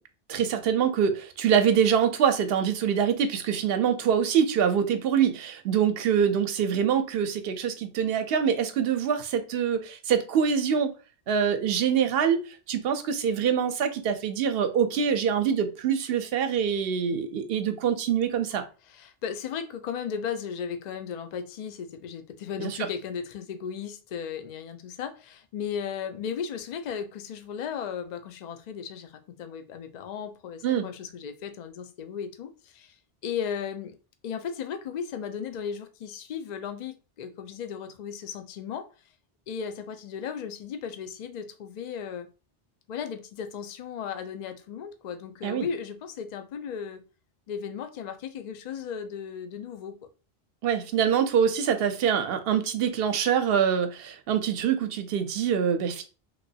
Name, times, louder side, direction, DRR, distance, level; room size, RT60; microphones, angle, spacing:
voice 1, 0.3-10.9 11.3-18.6 22.6-22.7 30.6-30.9 45.4-45.7 50.6-56.1, right 7 dB, 75° right, 0.8 m, -25 dB
voice 2, 18.9-34.0 34.2-38.9 39.5-42.3 42.9-47.0 47.5-50.0, left 7 dB, 55° left, 0.5 m, -36 dB
3.0 x 3.0 x 2.7 m
omnidirectional pair, 1.0 m